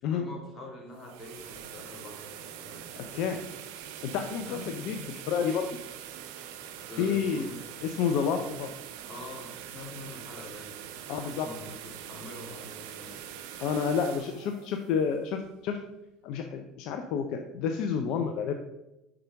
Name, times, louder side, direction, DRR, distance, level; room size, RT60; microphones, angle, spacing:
voice 1, 0.0-2.9 4.4-4.7 6.6-7.6 9.1-13.2 13.5-13.7, left 2 dB, 25° left, -2 dB, 2.2 m, -45 dB
sound 1, 0.8-15.7, right 10 dB, 70° right, 0.5 m, -44 dB
voice 2, 3.0-3.4 4.0-5.7 7.0-7.5 7.8-8.7 11.1-11.5 13.6-15.8 16.2-18.6, left 6 dB, 65° left, 4 dB, 0.5 m, -30 dB
5.8 x 4.9 x 3.6 m, 0.90 s
hypercardioid pair, 70°, 0 cm